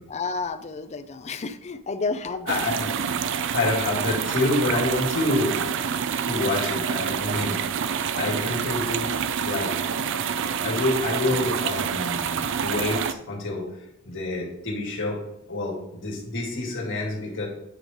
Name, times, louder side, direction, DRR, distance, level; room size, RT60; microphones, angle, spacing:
voice 1, 0.1-2.7, left 4 dB, 30° left, 11 dB, 0.4 m, -31 dB
voice 2, 2.5-2.9 3.5-5.6 6.2-7.6 8.2-9.1 9.4-9.7 10.6-13.7 14.0-15.2 15.5-17.5, left 2 dB, 60° left, -2 dB, 2.1 m, -27 dB
sound 1, 2.5-13.1, right 7 dB, 60° right, 0.4 m, -27 dB
8.6 x 3.2 x 4.9 m, 0.85 s
head